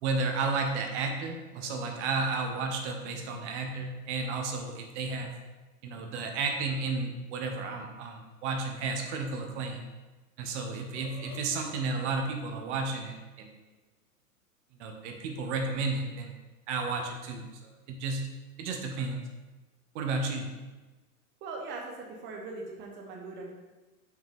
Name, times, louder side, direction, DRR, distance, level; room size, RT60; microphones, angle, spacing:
voice 1, 0.0-5.3 5.8-9.9 10.4-13.5 14.8-16.3 16.7-18.2 18.6-19.2 19.9-20.5, right 3 dB, 50° right, 4 dB, 1.1 m, -32 dB
Burping eructation, 10.3-10.4 10.7-11.5, left 5 dB, 30° left, 0.7 m, -48 dB
voice 2, 21.4-23.5, right 3 dB, 25° right, 0 dB, 0.9 m, -40 dB
5.9 x 5.3 x 3.6 m, 1.2 s
hypercardioid pair, 120°, 45 cm